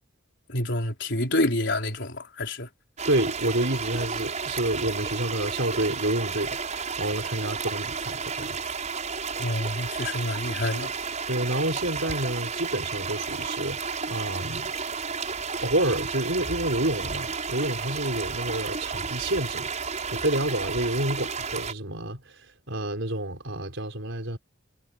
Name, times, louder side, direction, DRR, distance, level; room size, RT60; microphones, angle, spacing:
voice 1, 0.5-2.7 9.4-10.9, left 1 dB, 60° left, 4.8 m, -28 dB
sound 1, 3.0-21.7, right 5 dB, 35° right, 6.8 m, -32 dB
voice 2, 3.1-8.6 11.3-13.8 14.1-14.7 15.6-22.2 22.7-24.4, right 1 dB, 65° right, 5.4 m, -29 dB
head